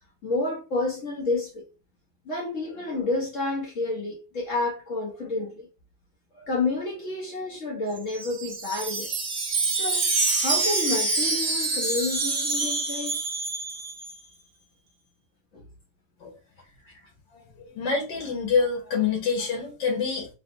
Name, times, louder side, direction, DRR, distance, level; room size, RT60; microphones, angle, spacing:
voice 1, 0.2-1.7 2.2-5.7 6.3-9.1 9.6-13.2 15.5-15.6 16.9-17.0, left 3 dB, 50° left, 1.1 m, -30 dB
Wind chime, 8.0-14.2, right 3 dB, 50° right, 1.5 m, -26 dB
voice 2, 17.6-20.3, left 5 dB, 80° left, 1.6 m, -26 dB
3.7 x 2.3 x 2.5 m
omnidirectional pair, 2.0 m